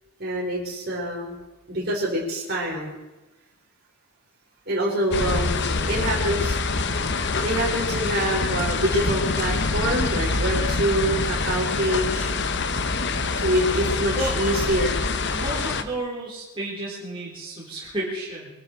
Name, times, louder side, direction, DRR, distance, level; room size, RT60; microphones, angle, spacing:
voice 1, 0.2-1.3 1.7-2.9 4.7-6.6 7.4-12.3 13.4-15.0, right 1 dB, 45° right, -4 dB, 4.2 m, -25 dB
sound 1, 5.1-15.8, left 3 dB, 50° left, 1.0 m, -25 dB
voice 2, 15.3-18.5, right 1 dB, 25° right, -8 dB, 4.2 m, -31 dB
23.0 x 13.0 x 4.6 m, 1.1 s
head